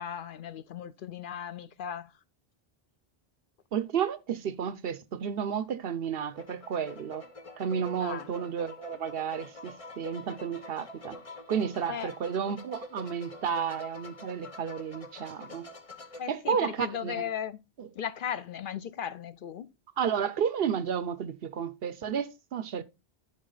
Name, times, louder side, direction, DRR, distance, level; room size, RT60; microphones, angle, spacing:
voice 1, 0.0-2.1 8.0-8.3 11.9-12.1 16.2-17.6 18.0-19.7, left 8 dB, 60° left, 0.7 m, -36 dB
voice 2, 3.7-7.3 7.6-11.2 11.5-15.7 16.3-17.3 17.8-17.9 20.0-22.8, right 7 dB, 70° right, 0.9 m, -32 dB
sound 1, 6.3-16.2, left 3 dB, 35° left, 1.1 m, -47 dB
10.5 x 5.5 x 3.9 m
omnidirectional pair, 1.1 m